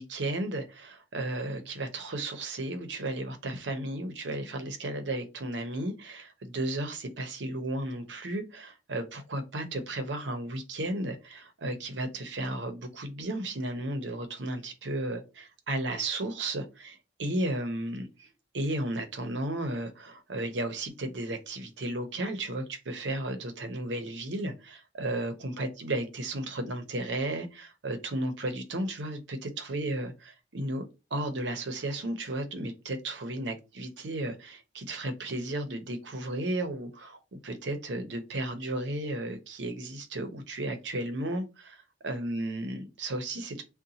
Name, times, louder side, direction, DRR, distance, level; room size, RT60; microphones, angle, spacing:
voice 1, 0.0-18.3 18.5-30.9 31.1-43.6, right 1 dB, 75° right, 0.7 m, -34 dB
2.7 x 2.2 x 3.8 m
head